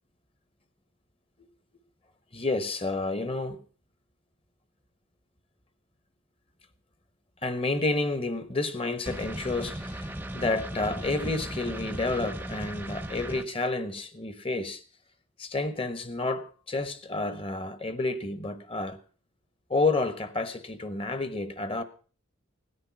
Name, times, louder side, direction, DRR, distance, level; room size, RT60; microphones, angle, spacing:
voice 1, 2.3-3.6 7.4-14.8 15.4-19.0 19.7-21.8, left 2 dB, 25° left, 1.0 m, -30 dB
sound 1, 9.1-13.4, right 1 dB, 10° right, 0.7 m, -37 dB
17.0 x 9.7 x 6.0 m
head